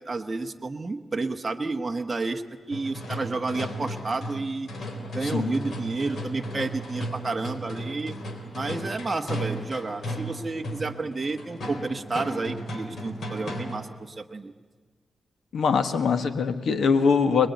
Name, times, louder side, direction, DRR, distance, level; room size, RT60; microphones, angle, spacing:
voice 1, 0.0-2.4 2.7-4.7 5.1-8.1 8.5-14.5, right 3 dB, 25° right, 3 dB, 1.1 m, -30 dB
sound 1, 2.7-14.0, equal, 70° left, 3.7 m, -35 dB
voice 2, 15.5-17.5, left 5 dB, 90° left, 9 dB, 1.6 m, -22 dB
25.5 x 21.0 x 9.4 m, 1.5 s
wide cardioid pair, 115°, 0 cm